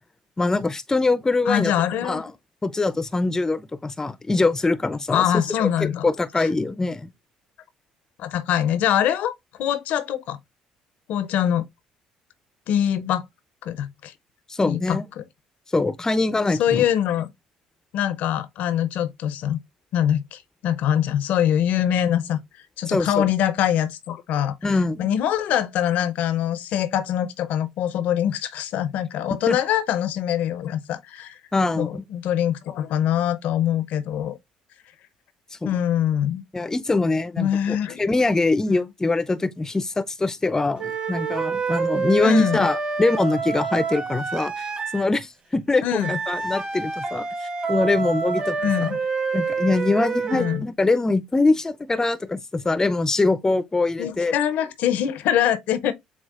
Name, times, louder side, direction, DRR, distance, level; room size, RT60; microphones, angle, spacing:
voice 1, 0.4-1.7 2.0-2.3 2.6-5.4 5.8-7.1 14.5-15.0 15.7-16.8 22.9-23.3 24.6-25.1 29.5-29.6 31.5-31.9 35.6-35.7 36.5-47.3 47.7-48.6 49.3-54.3, left 3 dB, 20° left, 0.6 m, -23 dB
voice 2, 1.5-2.2 5.1-6.1 6.4-6.5 8.2-10.4 11.1-11.6 12.7-13.2 13.6-14.1 14.7-15.2 16.6-17.3 17.9-19.6 19.9-22.4 22.8-31.4 31.8-34.4 35.6-36.4 37.4-38.0 42.2-42.7 45.8-46.1 48.6-49.0 50.3-50.7 54.0-55.9, left 10 dB, 70° left, 0.7 m, -23 dB
sound 1, 40.8-45.1 46.0-50.6, right 5 dB, 40° right, 2.2 m, -27 dB
7.2 x 2.4 x 2.4 m
hypercardioid pair, 65°, 3 cm